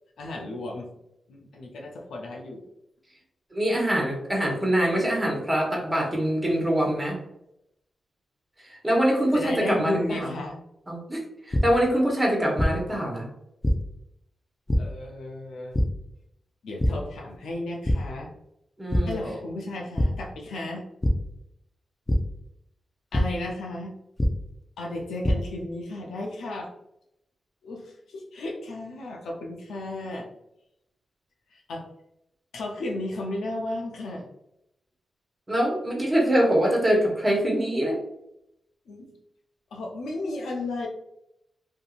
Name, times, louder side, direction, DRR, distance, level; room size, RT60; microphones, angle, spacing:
voice 1, 0.2-0.9 1.3-2.6 9.3-10.6 14.8-15.7 16.6-18.3 19.1-20.8 23.1-23.9 24.8-26.7 27.6-30.3 31.5-31.9 32.5-34.3 38.9-39.1 39.7-40.9, left 2 dB, 85° left, 0 dB, 0.5 m, -34 dB
voice 2, 3.5-7.2 8.8-10.3 10.9-13.3 18.8-19.2 35.5-38.0, equal, 20° right, -1 dB, 1.2 m, -24 dB
sound 1, 11.5-11.6 12.6-12.7 13.6-13.7 14.7-14.8 15.7-15.8 16.8-16.9 17.3-17.5 17.8-18.0 18.9-19.0 20.0-20.1 21.0-21.1 22.1-22.2 23.1-23.2 24.2-24.3 25.0-25.3, left 1 dB, 25° left, 0.5 m, -22 dB
2.7 x 2.6 x 2.4 m, 0.82 s
supercardioid pair, 45°, 0 cm